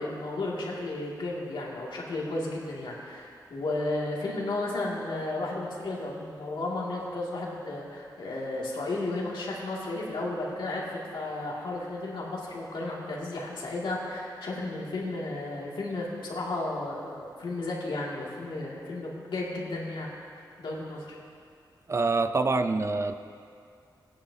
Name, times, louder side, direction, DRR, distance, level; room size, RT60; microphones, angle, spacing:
voice 1, 0.0-21.1, left 2 dB, 85° left, -4 dB, 2.3 m, -33 dB
voice 2, 21.9-23.1, right 3 dB, 35° right, 9 dB, 0.5 m, -25 dB
18.0 x 10.5 x 2.8 m, 2.3 s
wide cardioid pair, 115°, 8 cm